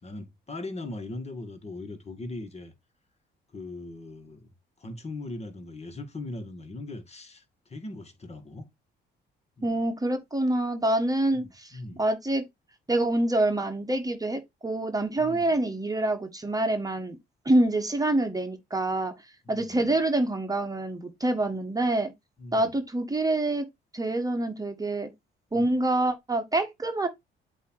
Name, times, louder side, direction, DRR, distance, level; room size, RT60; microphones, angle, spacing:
voice 1, 0.0-2.7 3.5-4.5 4.8-8.7 9.6-9.8 11.3-12.0 15.2-15.5 19.4-20.0 22.4-22.8 25.5-25.7, left 2 dB, 30° left, 1.8 m, -40 dB
voice 2, 9.6-12.4 12.9-17.2 17.4-19.1 19.5-22.1 22.5-23.7 23.9-25.1 25.5-27.1, right 1 dB, 20° right, 1.3 m, -26 dB
8.1 x 2.9 x 4.6 m
cardioid pair, 90°, 20 cm